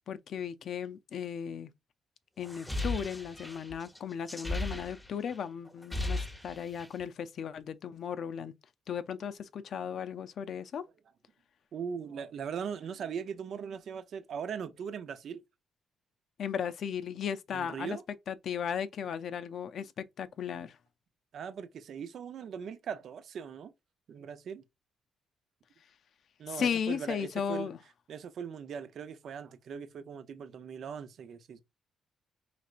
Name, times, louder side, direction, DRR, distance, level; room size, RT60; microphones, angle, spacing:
voice 1, 0.1-1.7 2.4-8.5 8.9-10.8 16.4-18.0 18.3-20.8 26.5-27.8, left 7 dB, 60° left, 0.5 m, -36 dB
sound 1, 2.4-5.4 5.7-7.0, left 2 dB, 10° left, 0.9 m, -36 dB
voice 2, 11.7-15.4 17.5-18.0 21.3-23.7 24.1-24.6 26.4-27.7 28.1-31.6, right 7 dB, 65° right, 0.6 m, -40 dB
5.0 x 3.3 x 2.5 m
cardioid pair, 90°, 0 cm